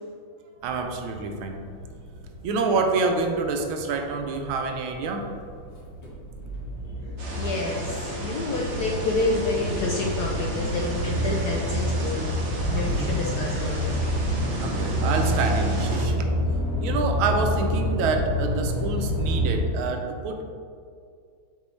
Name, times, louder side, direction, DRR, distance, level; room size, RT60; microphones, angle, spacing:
sound 1, 0.6-19.6, equal, 45° left, 2.0 m, -28 dB
voice 1, 0.6-1.6 2.4-5.3 12.7-13.2 14.6-16.3 16.8-20.5, right 4 dB, 80° right, 4 dB, 1.4 m, -27 dB
sound 2, 7.2-16.0, right 2 dB, 60° right, 0.7 m, -36 dB
voice 2, 7.4-12.3 12.7-14.0, left 3 dB, 75° left, -2 dB, 0.9 m, -29 dB
6.8 x 4.5 x 3.2 m, 2.2 s
omnidirectional pair, 2.3 m